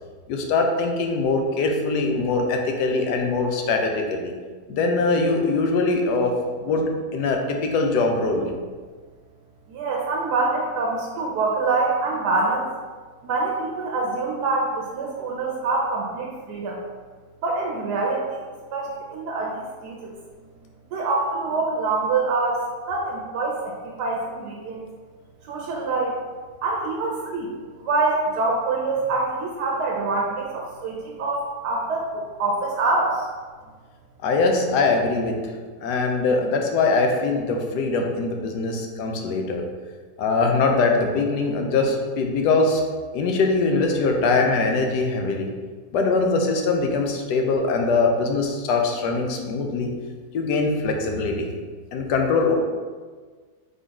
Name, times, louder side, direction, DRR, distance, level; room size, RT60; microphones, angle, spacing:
voice 1, 0.3-4.3 4.7-6.3 6.6-6.8 7.1-8.5 34.2-35.4 35.8-39.6 40.2-42.8 43.1-45.5 45.9-49.9 50.3-51.5 51.9-52.6, left 3 dB, 80° left, 2 dB, 1.2 m, -22 dB
voice 2, 9.7-12.7 13.2-16.8 17.4-18.4 18.7-20.1 20.9-24.9 25.4-26.2 26.6-27.5 27.8-33.2, right 3 dB, 80° right, -2 dB, 1.2 m, -25 dB
3.9 x 3.7 x 3.5 m, 1.5 s
omnidirectional pair, 1.8 m